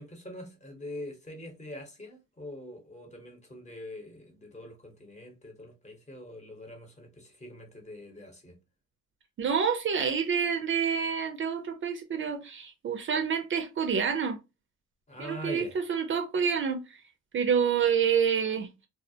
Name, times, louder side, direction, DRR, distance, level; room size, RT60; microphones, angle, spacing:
voice 1, 0.0-8.5 15.1-15.7, left 1 dB, 25° left, 0.9 m, -43 dB
voice 2, 9.4-14.4 15.2-16.8 17.3-18.7, right 7 dB, 40° right, 0.4 m, -28 dB
2.3 x 2.0 x 2.7 m
cardioid pair, 90°, 30 cm